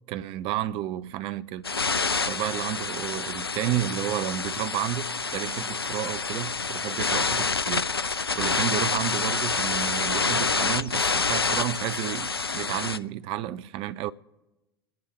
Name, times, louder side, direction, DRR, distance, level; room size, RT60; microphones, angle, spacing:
voice 1, 0.1-1.7 2.3-5.1 5.3-7.9 8.3-14.1, right 13 dB, 45° right, 0.6 m, -31 dB
sound 1, 1.6-13.0, left 4 dB, 90° left, 0.4 m, -27 dB
27.5 x 10.5 x 3.2 m
figure-of-eight pair, 75°, 12 cm